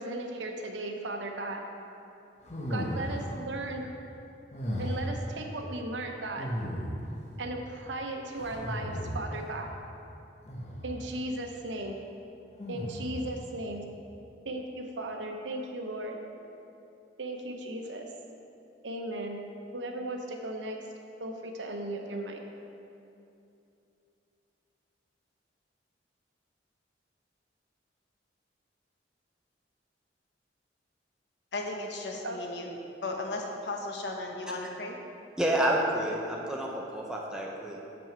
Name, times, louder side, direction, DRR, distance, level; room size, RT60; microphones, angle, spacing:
voice 1, 0.0-1.6 2.7-4.0 4.8-6.5 7.4-9.8 10.8-12.0 12.7-13.8 14.4-16.2 17.2-18.1 18.8-19.4 19.7-20.8 21.2-22.4 32.2-32.4, right 1 dB, 85° right, 3 dB, 0.9 m, -36 dB
sound 1, 2.4-3.4 4.5-5.2 6.4-7.2 8.4-9.4 10.5-11.0 12.6-13.3, equal, 40° left, 1.0 m, -35 dB
voice 2, 31.5-32.7 33.0-35.0, left 2 dB, 65° left, 2 dB, 1.0 m, -35 dB
voice 3, 35.4-37.8, right 1 dB, 5° right, -3 dB, 0.6 m, -29 dB
7.0 x 6.1 x 5.9 m, 2.7 s
head